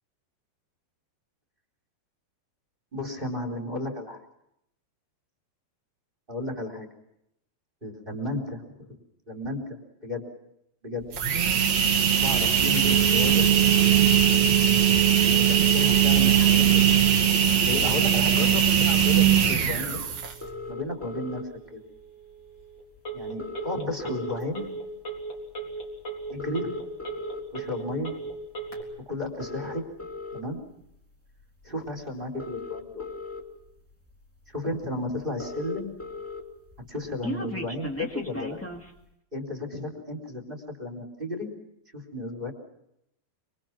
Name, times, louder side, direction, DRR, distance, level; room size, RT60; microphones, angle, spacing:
voice 1, 2.9-4.2 6.3-6.9 7.8-9.0 9.3-9.8 10.0-10.2 10.8-11.0 12.2-13.5 15.2-16.8 17.6-20.0 20.7-21.4 21.7-21.8 23.1-24.7 26.3-26.7 27.5-28.1 29.1-29.8 30.3-30.6 31.6-33.1 34.5-35.9 36.8-38.6 39.3-41.5 41.9-42.5, left 2 dB, 10° right, 5 dB, 3.7 m, -33 dB
sound 1, 11.0-20.5, right 9 dB, 50° right, 2.6 m, -20 dB
Telephone, 12.8-28.8, right 7 dB, 25° left, 4.1 m, -38 dB
sound 2, 20.4-21.4 22.6-22.7 22.9-23.0 23.2-24.7 25.2-25.4 26.2-27.4 28.1-28.3 29.2-30.4 31.6-31.7 32.2-33.4 34.1-34.2 34.5-34.6 34.8-34.9 35.1-36.4 36.7-38.9, left 2 dB, 10° left, 0.7 m, -37 dB
25.5 x 24.0 x 6.1 m, 0.78 s
omnidirectional pair, 5.1 m